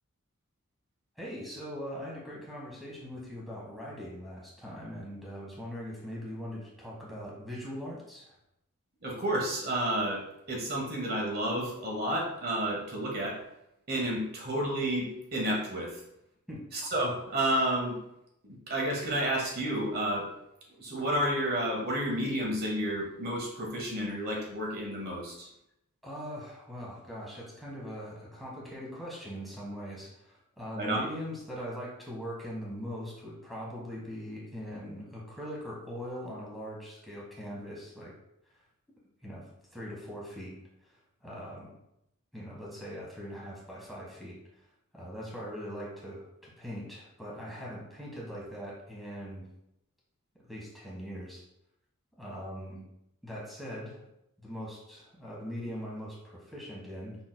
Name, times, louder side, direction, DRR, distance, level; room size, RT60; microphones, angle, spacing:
voice 1, 1.2-8.3 16.5-16.6 26.0-38.1 39.2-40.5 40.8-41.0 41.2-41.7 42.3-44.4 44.9-49.5 50.4-51.4 52.2-52.8 53.2-54.0 54.4-57.2, equal, ahead, -5 dB, 1.3 m, -41 dB
voice 2, 9.0-13.4 13.9-16.0 16.7-18.0 18.4-20.3 20.8-25.5 30.7-31.0, right 1 dB, 45° right, -1 dB, 1.3 m, -31 dB
5.9 x 4.1 x 2.2 m, 0.83 s
head